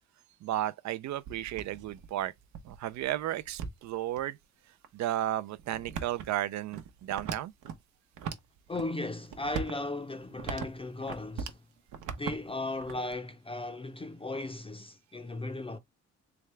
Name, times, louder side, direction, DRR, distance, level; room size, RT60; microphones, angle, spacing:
voice 1, 0.4-2.3 2.6-4.4 4.9-7.5, right 13 dB, 65° right, 0.4 m, -33 dB
sound 1, 1.1-4.2 4.8-4.9 5.6-7.8 8.1-8.9 9.2-11.6 11.9-13.2, right 7 dB, 85° right, 0.9 m, -40 dB
voice 2, 8.7-11.6 12.1-15.8, left 2 dB, 20° left, 0.5 m, -36 dB
3.4 x 3.3 x 3.2 m
cardioid pair, 90°, 30 cm